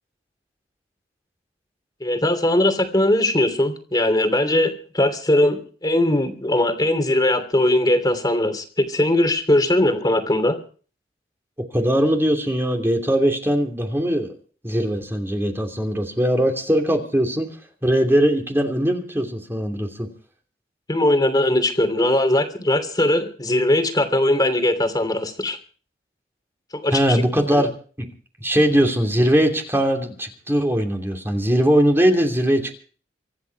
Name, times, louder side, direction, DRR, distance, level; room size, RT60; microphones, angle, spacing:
voice 1, 2.0-10.6 20.9-25.6 26.7-27.2 27.5-27.7, left 1 dB, 25° left, 7 dB, 3.0 m, -20 dB
voice 2, 11.7-14.4 14.6-17.5 17.8-20.1 26.9-27.7 28.0-28.1 28.4-32.8, equal, 15° right, 3 dB, 2.9 m, -20 dB
25.0 x 10.5 x 4.7 m, 0.42 s
head